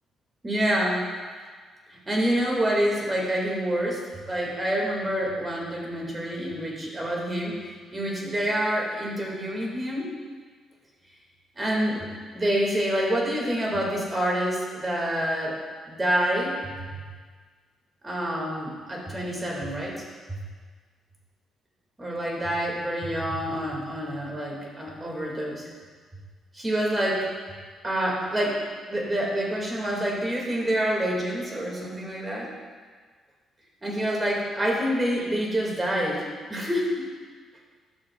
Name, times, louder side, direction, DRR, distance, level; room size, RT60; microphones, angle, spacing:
voice 1, 0.4-1.1 1.9-7.5 7.9-10.1 11.6-12.1 12.3-15.6 15.9-16.6 18.0-20.0 20.3-20.4 22.0-25.7 26.5-27.3 27.8-28.6 28.9-32.5 33.8-37.1, equal, 20° right, -2 dB, 2.1 m, -27 dB
11.5 x 6.7 x 2.4 m, 1.5 s
cardioid pair, 90°, 0 cm